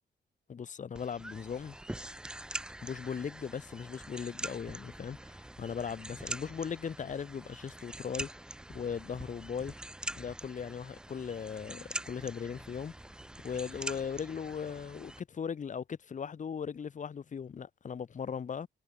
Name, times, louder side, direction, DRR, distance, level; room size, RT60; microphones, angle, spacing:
voice 1, 0.5-1.8 2.8-8.3 8.7-9.8 10.1-12.9 13.4-18.7, left 7 dB, 40° left, 0.9 m, -38 dB
sound 1, 0.9-15.2, right 1 dB, 5° right, 0.3 m, -44 dB
wide cardioid pair, 160°, 19 cm